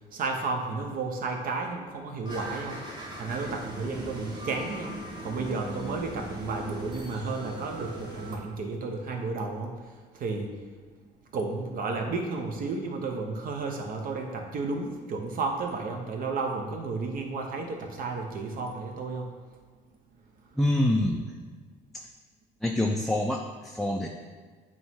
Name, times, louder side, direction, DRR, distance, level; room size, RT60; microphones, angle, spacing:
voice 1, 0.1-2.9 3.2-9.8 10.1-10.5 11.3-19.3, right 3 dB, 55° right, 2 dB, 1.0 m, -32 dB
sound 1, 2.2-8.3, right 1 dB, 25° right, 1.2 m, -39 dB
voice 2, 20.6-21.2 21.9-22.0 22.6-24.1, left 1 dB, ahead, 0 dB, 0.4 m, -26 dB
8.7 x 3.1 x 3.7 m, 1.5 s
cardioid pair, 110°, 17 cm